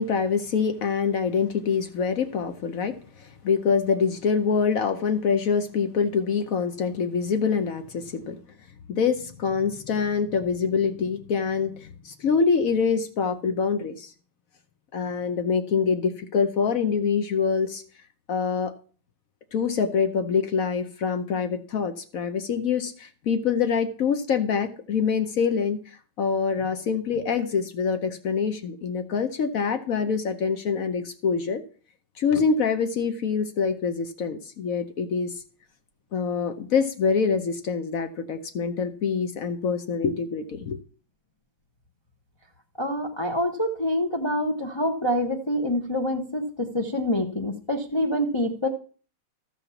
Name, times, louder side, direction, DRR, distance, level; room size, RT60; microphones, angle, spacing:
voice 1, 0.0-2.9 3.4-8.4 8.9-14.1 14.9-17.8 18.3-18.7 19.5-25.8 26.2-31.6 32.2-35.3 36.1-40.8, left 6 dB, 60° left, 8 dB, 0.9 m, -25 dB
voice 2, 42.8-48.7, left 1 dB, 35° left, 1 dB, 0.4 m, -26 dB
14.0 x 5.0 x 7.0 m, 0.41 s
omnidirectional pair, 2.3 m